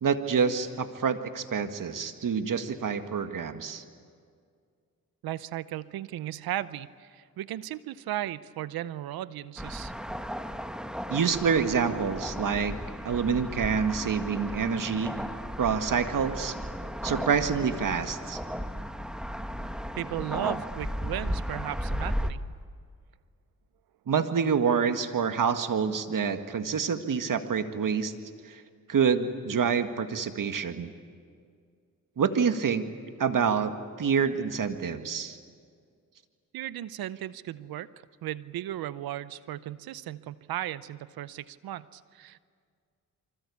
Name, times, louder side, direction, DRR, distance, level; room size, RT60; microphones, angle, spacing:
voice 1, 0.0-3.8 11.1-12.8 13.0-15.2 15.6-16.6 17.0-18.4 24.1-28.1 28.5-28.6 28.9-30.9 32.2-32.9 33.2-33.7 34.0-35.4, right 6 dB, 65° right, 8 dB, 1.8 m, -27 dB
voice 2, 5.2-9.9 19.9-22.4 36.5-37.9 38.2-42.4, right 13 dB, 90° right, 17 dB, 0.7 m, -36 dB
sound 1, 9.6-22.3, equal, ahead, 1.5 m, -35 dB
27.5 x 25.0 x 8.5 m, 2.1 s
cardioid pair, 55°, 35 cm